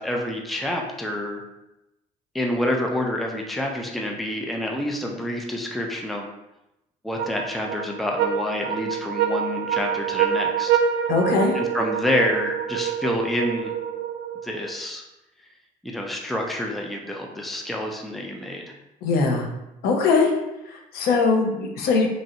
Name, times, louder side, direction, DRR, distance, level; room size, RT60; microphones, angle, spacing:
voice 1, 0.0-1.4 2.3-6.3 7.0-10.8 11.5-13.7 14.4-15.0 15.8-18.6, left 1 dB, ahead, 1 dB, 0.4 m, -28 dB
sound 1, 7.2-14.7, right 8 dB, 80° right, 0.5 m, -26 dB
voice 2, 11.1-11.6 19.0-19.5 19.8-20.3 20.7-22.1, left 4 dB, 80° left, 1 dB, 0.6 m, -21 dB
3.0 x 2.5 x 2.8 m, 0.92 s
cardioid pair, 120°, 16 cm